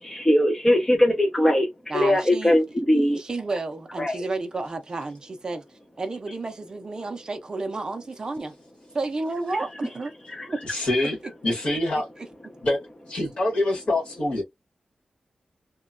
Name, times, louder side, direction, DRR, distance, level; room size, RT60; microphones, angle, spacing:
voice 1, 0.0-3.2 4.0-4.2 10.3-10.5, left 1 dB, 15° left, 0.5 m, -21 dB
voice 2, 1.9-2.6 3.1-5.6 6.0-8.5 8.9-10.1 10.5-10.6 11.5-11.6, right 3 dB, 35° right, 0.5 m, -31 dB
voice 3, 10.6-11.2 11.4-12.1 12.6-12.8 13.1-14.4, left 1 dB, 60° left, 1.5 m, -25 dB
2.9 x 2.2 x 2.4 m
wide cardioid pair, 175°, 2 cm